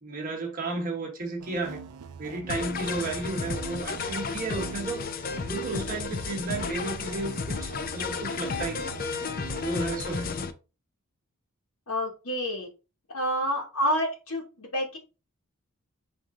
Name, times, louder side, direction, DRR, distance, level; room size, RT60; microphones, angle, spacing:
voice 1, 0.0-1.8 2.2-5.1 5.5-8.9 9.6-10.3, right 3 dB, 40° right, 1.3 m, -33 dB
sound 1, 1.4-9.7, right 6 dB, 80° right, 0.4 m, -44 dB
sound 2, 2.5-10.5, left 4 dB, 40° left, 0.4 m, -33 dB
voice 2, 11.9-12.7 13.1-15.0, equal, 65° left, 1.1 m, -29 dB
4.6 x 2.6 x 3.7 m
head